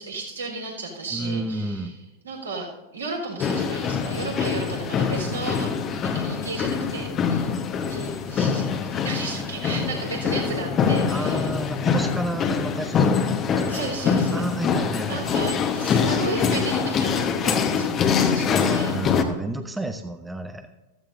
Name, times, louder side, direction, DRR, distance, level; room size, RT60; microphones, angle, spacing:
voice 1, 0.0-1.9 2.2-7.5 7.9-11.5 13.7-14.4 15.1-19.0, right 3 dB, 75° right, -2 dB, 4.1 m, -34 dB
voice 2, 1.1-2.0 11.1-13.8 14.3-15.3 18.4-20.7, right 2 dB, 5° right, 7 dB, 0.8 m, -31 dB
sound 1, 3.4-19.2, left 6 dB, 30° left, 1.2 m, -24 dB
14.5 x 14.0 x 2.7 m, 1.1 s
figure-of-eight pair, 90°, 0 cm